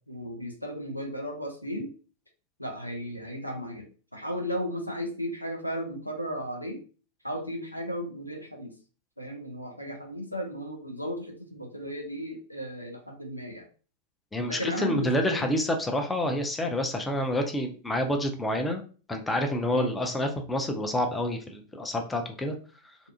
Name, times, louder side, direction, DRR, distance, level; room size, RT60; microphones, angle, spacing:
voice 1, 0.1-1.9 2.6-6.8 7.2-8.7 9.2-13.7 14.5-15.5 19.7-19.9, equal, 90° left, 1 dB, 0.5 m, -35 dB
voice 2, 14.3-18.8 19.1-22.5, left 1 dB, 10° left, 4 dB, 0.4 m, -28 dB
2.6 x 2.3 x 2.4 m, 0.37 s
figure-of-eight pair, 90°, 0 cm